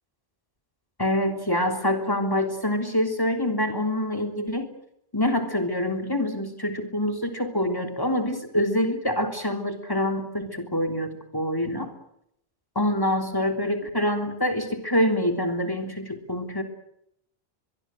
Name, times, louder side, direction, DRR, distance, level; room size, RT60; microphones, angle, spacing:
voice 1, 1.0-4.7 5.1-11.9 12.8-16.6, left 1 dB, 20° left, 6 dB, 3.5 m, -26 dB
23.0 x 22.5 x 7.7 m, 0.75 s
omnidirectional pair, 1.1 m